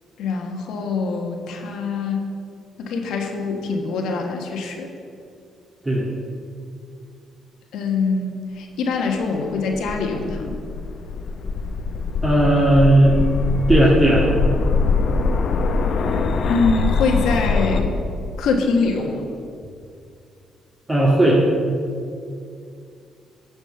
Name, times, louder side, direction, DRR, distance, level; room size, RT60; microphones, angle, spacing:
voice 1, 0.2-2.3 2.8-4.9 7.7-10.6 16.5-17.9 18.4-19.3, left 4 dB, 85° left, 2 dB, 1.4 m, -24 dB
sound 1, 9.4-17.8, left 4 dB, 60° left, 0.9 m, -22 dB
voice 2, 12.2-13.2 13.7-14.3 20.9-21.4, right 1 dB, 20° right, -5 dB, 1.8 m, -15 dB
11.5 x 5.3 x 6.8 m, 2.3 s
cardioid pair, 90°, 0 cm